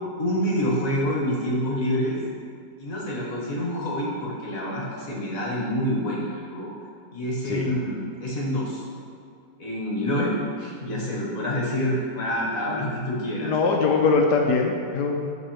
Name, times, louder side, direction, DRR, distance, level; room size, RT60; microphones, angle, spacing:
voice 1, 0.2-2.2 2.8-6.7 7.1-8.8 9.6-13.5, equal, 55° left, -4 dB, 1.7 m, -27 dB
voice 2, 13.4-15.3, left 4 dB, 80° left, 2 dB, 1.2 m, -22 dB
12.0 x 4.1 x 3.0 m, 2.3 s
omnidirectional pair, 1.8 m